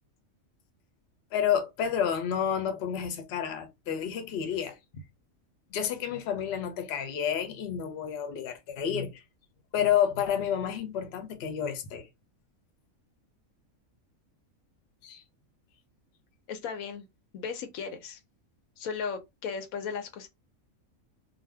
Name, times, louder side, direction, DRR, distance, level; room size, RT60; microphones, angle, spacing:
voice 1, 1.3-4.8 5.7-9.2 9.7-12.1 15.0-15.2, left 8 dB, 60° left, 0.8 m, -30 dB
voice 2, 16.5-17.1 17.3-18.2 18.8-20.3, left 6 dB, 85° left, 1.1 m, -36 dB
2.6 x 2.1 x 3.2 m
omnidirectional pair, 1.4 m